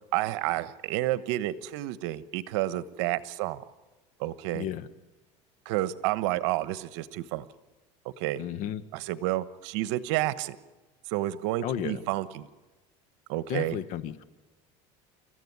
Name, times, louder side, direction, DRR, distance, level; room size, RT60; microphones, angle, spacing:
voice 1, 0.1-3.6 4.2-4.7 5.6-7.5 8.2-8.4 8.9-10.6 11.1-12.5 13.3-13.8, right 15 dB, 80° right, 15 dB, 1.1 m, -30 dB
voice 2, 4.5-4.9 8.4-8.8 11.6-12.0 13.5-14.2, left 10 dB, 55° left, 14 dB, 1.4 m, -33 dB
29.0 x 14.5 x 9.7 m, 1.2 s
supercardioid pair, 120°, 15 cm